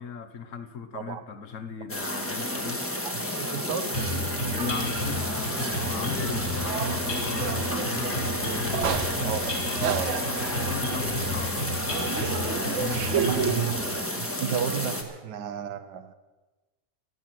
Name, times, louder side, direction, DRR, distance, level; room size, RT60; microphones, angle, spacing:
voice 1, 0.0-2.8 4.5-8.8 10.5-13.8, left 6 dB, 55° left, 10 dB, 1.1 m, -38 dB
sound 1, 1.9-15.0, left 1 dB, 10° left, 1.1 m, -31 dB
voice 2, 3.0-4.0 8.7-10.4 13.1-13.8 14.2-16.1, right 9 dB, 80° right, 11 dB, 1.5 m, -32 dB
sound 2, 3.9-13.5, left 1 dB, 70° left, 3.4 m, -33 dB
sound 3, 4.0-14.1, right 7 dB, 55° right, 0.9 m, -34 dB
15.0 x 12.5 x 5.9 m, 1.2 s
omnidirectional pair, 1.8 m